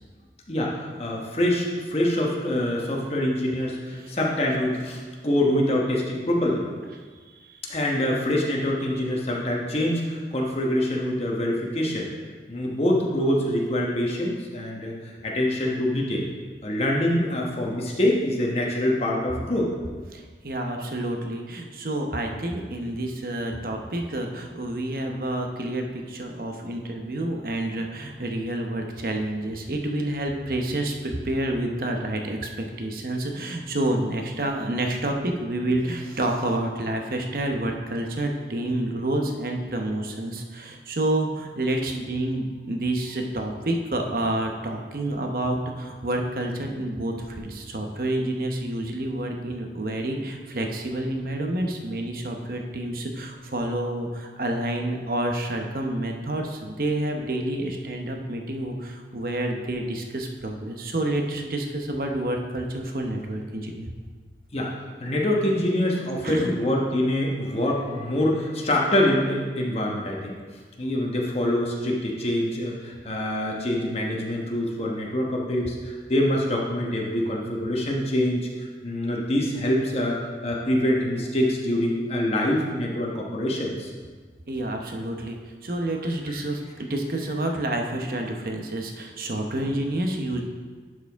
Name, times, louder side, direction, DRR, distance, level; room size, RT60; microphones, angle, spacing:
voice 1, 0.5-6.7 7.7-12.1 12.5-16.3 16.6-19.7 25.1-25.2 64.5-64.7 65.0-70.4 70.8-78.5 78.8-83.9 89.6-89.7, left 1 dB, 35° left, -2 dB, 1.1 m, -25 dB
voice 2, 7.4-7.8 20.1-32.5 32.8-63.9 66.2-66.6 84.5-90.4, right 1 dB, 55° right, 3 dB, 0.8 m, -29 dB
11.0 x 4.8 x 3.5 m, 1.5 s
head